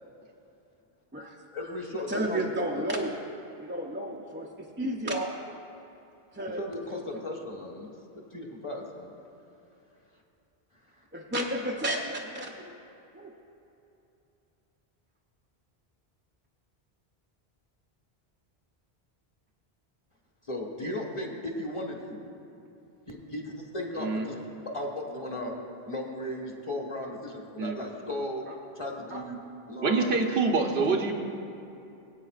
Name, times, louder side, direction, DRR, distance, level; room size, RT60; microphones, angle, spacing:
voice 1, 1.5-2.8 6.6-7.9 8.3-9.1 20.5-22.3 23.1-24.4 24.7-25.5 25.8-28.4 28.7-29.4 29.7-30.1, left 1 dB, 30° left, -1 dB, 1.3 m, -36 dB
voice 2, 2.1-3.2 3.6-5.3 6.3-6.7 11.1-12.8 13.1-13.3 25.3-25.6 28.5-28.6 29.1-29.2 30.9-31.0, right 1 dB, 15° right, -1 dB, 0.5 m, -32 dB
voice 3, 29.8-31.1, right 4 dB, 80° right, 3 dB, 1.1 m, -25 dB
22.0 x 8.5 x 2.4 m, 2.8 s
omnidirectional pair, 1.1 m